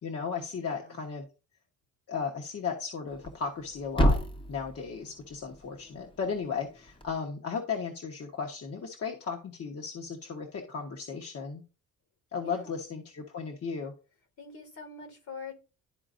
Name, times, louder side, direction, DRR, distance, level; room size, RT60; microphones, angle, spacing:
voice 1, 0.0-1.3 2.1-4.2 4.5-11.6 12.3-13.9, left 5 dB, 50° left, 2 dB, 1.2 m, -35 dB
voice 2, 0.6-1.0 12.4-12.7 14.4-15.6, left 4 dB, 75° left, 6 dB, 2.8 m, -44 dB
Thump thud, 3.1-7.2, equal, 15° left, 0.8 m, -32 dB
12.0 x 4.0 x 2.6 m, 0.32 s
cardioid pair, 90°, 30 cm